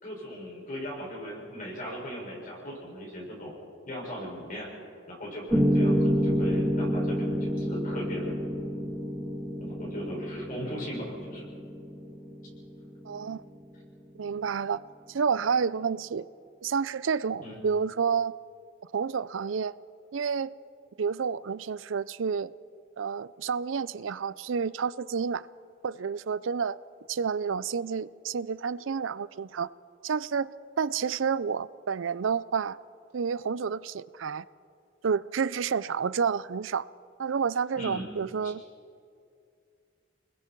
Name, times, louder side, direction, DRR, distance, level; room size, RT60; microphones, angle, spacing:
voice 1, 0.0-3.5 3.9-4.7 5.1-8.4 9.6-11.5 17.4-17.6 37.8-38.0 38.4-38.5, equal, 45° left, 6.5 m, -38 dB
Piano, 5.5-13.6, equal, 10° right, 2.0 m, -29 dB
voice 2, 13.1-13.4 14.2-14.8 15.1-16.3 16.6-18.3 18.9-19.7 20.1-20.5 21.0-22.5 23.0-25.5 25.8-26.8 27.1-29.7 30.0-32.8 33.1-34.4 35.0-36.9 37.2-38.6, right 6 dB, 80° right, 0.5 m, -29 dB
30.0 x 21.0 x 4.6 m
head